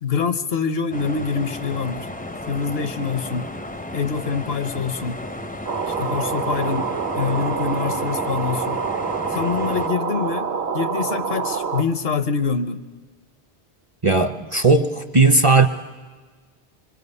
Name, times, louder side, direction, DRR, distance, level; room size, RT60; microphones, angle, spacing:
voice 1, 0.0-2.1 2.5-3.5 3.9-5.2 5.9-6.9 7.1-8.8 9.3-12.8, left 5 dB, 70° left, 10 dB, 1.1 m, -25 dB
sound 1, 0.9-9.9, left 1 dB, 10° left, 0.5 m, -34 dB
sound 2, 5.7-11.8, right 5 dB, 70° right, 1.1 m, -26 dB
voice 2, 14.0-15.7, right 3 dB, 35° right, 8 dB, 0.6 m, -16 dB
24.5 x 24.0 x 5.4 m, 1.4 s
omnidirectional pair, 1.1 m